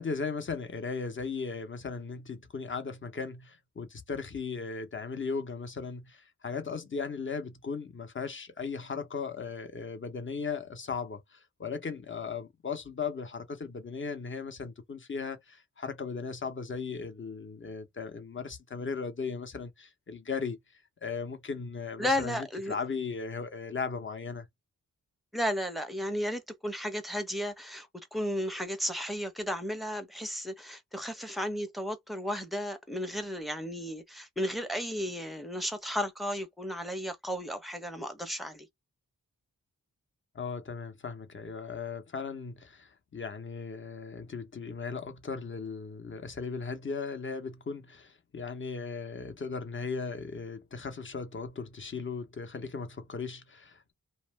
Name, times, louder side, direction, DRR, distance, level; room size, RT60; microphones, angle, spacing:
voice 1, 0.0-20.6 21.0-24.5 40.3-53.9, left 5 dB, 35° left, 0.8 m, -37 dB
voice 2, 22.0-22.8 25.3-38.7, equal, ahead, 0.7 m, -34 dB
2.5 x 2.0 x 3.2 m
wide cardioid pair, 85°, 34 cm